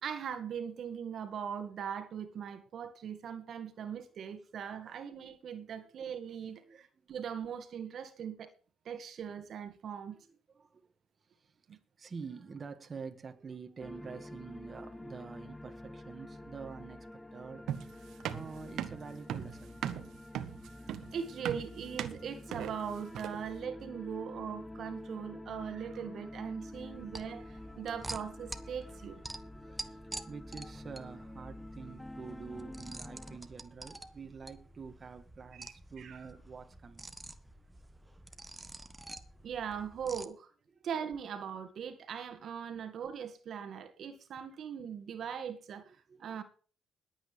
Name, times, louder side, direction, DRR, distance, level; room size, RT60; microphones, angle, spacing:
voice 1, 0.0-8.5 8.9-10.2 11.7-11.8 21.1-29.2 35.5-35.7 36.0-36.2 39.4-40.5 40.8-46.4, right 7 dB, 65° right, 1.9 m, -40 dB
voice 2, 4.8-5.3 5.8-5.9 6.6-6.8 10.1-10.9 11.2-18.0 18.3-20.0 24.1-24.2 25.3-25.5 26.9-27.1 27.7-27.9 29.5-37.2 38.3-38.5 40.7-40.9 42.7-42.8 45.8-46.4, right 5 dB, 35° right, 1.9 m, -48 dB
sound 1, 13.8-33.4, left 1 dB, 10° left, 0.7 m, -48 dB
sound 2, 17.7-23.5, right 10 dB, 80° right, 1.3 m, -38 dB
sound 3, 26.7-40.2, right 2 dB, 15° right, 1.3 m, -48 dB
21.0 x 8.8 x 3.5 m
cardioid pair, 90°, 0 cm